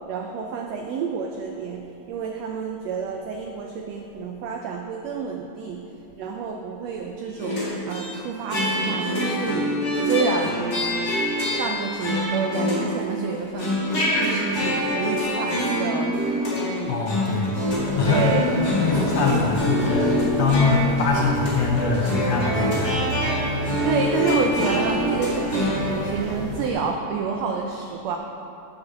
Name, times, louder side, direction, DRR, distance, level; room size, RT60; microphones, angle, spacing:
voice 1, 0.1-5.8 6.2-9.7 10.0-10.6 11.5-13.8 14.2-16.1 16.5-17.0 18.1-18.4 23.8-28.2, right 5 dB, 90° right, 2 dB, 1.4 m, -29 dB
sound 1, 7.4-8.2 8.5-13.0 13.3-26.1, equal, 35° left, 2.0 m, -25 dB
voice 2, 16.9-17.6 18.0-23.0, left 4 dB, 75° left, -1 dB, 1.6 m, -24 dB
sound 2, 17.6-26.7, left 1 dB, 55° right, 1.5 m, -31 dB
7.1 x 6.6 x 6.8 m, 3.0 s
omnidirectional pair, 3.6 m